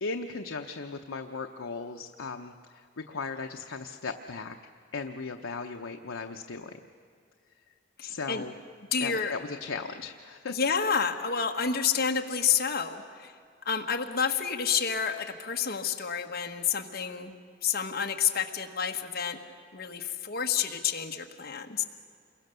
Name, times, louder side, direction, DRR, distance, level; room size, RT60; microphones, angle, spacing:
voice 1, 0.0-4.6 4.9-6.7 8.0-8.5 9.0-10.6, left 4 dB, 90° left, 4 dB, 0.8 m, -37 dB
voice 2, 8.0-8.4 8.9-9.3 10.5-13.3 13.6-17.3 17.6-19.4 19.7-21.8, left 7 dB, 50° left, 4 dB, 1.5 m, -29 dB
28.0 x 22.0 x 6.8 m, 2.3 s
head